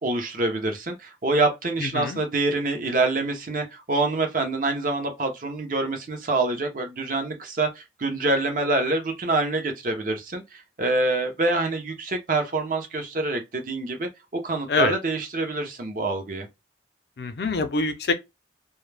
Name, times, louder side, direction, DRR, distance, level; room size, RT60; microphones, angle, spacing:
voice 1, 0.0-16.5, right 2 dB, 45° right, 0.6 m, -26 dB
voice 2, 1.8-2.2 14.7-14.9 17.2-18.1, left 3 dB, 60° left, 0.4 m, -25 dB
2.2 x 2.1 x 3.2 m
head